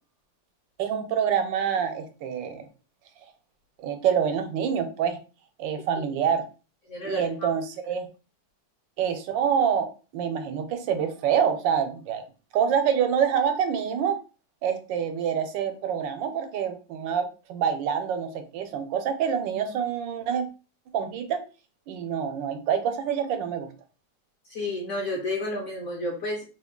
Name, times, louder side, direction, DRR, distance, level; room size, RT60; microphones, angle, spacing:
voice 1, 0.8-2.7 3.8-5.2 5.6-6.4 7.0-8.1 9.0-12.2 12.5-14.2 14.6-20.5 20.9-21.4 21.9-23.7, right 8 dB, 90° right, 7 dB, 1.3 m, -26 dB
voice 2, 6.9-7.5 24.5-26.4, left 2 dB, 60° left, -1 dB, 0.8 m, -31 dB
3.4 x 2.2 x 3.6 m, 0.34 s
omnidirectional pair, 2.0 m